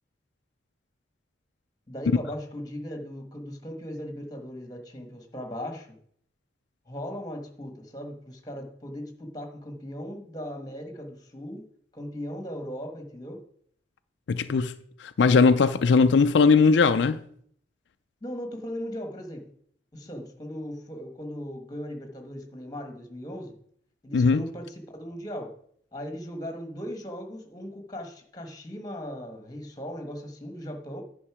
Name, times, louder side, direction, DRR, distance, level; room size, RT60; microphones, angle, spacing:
voice 1, 1.9-6.0 6.9-11.7 11.9-13.4 18.2-19.5 19.9-23.6 24.0-25.5 25.9-31.0, equal, 20° left, 1.4 m, -38 dB
voice 2, 14.3-14.7 15.0-17.2 24.1-24.4, left 4 dB, 80° left, 0.4 m, -19 dB
10.0 x 5.3 x 4.8 m
head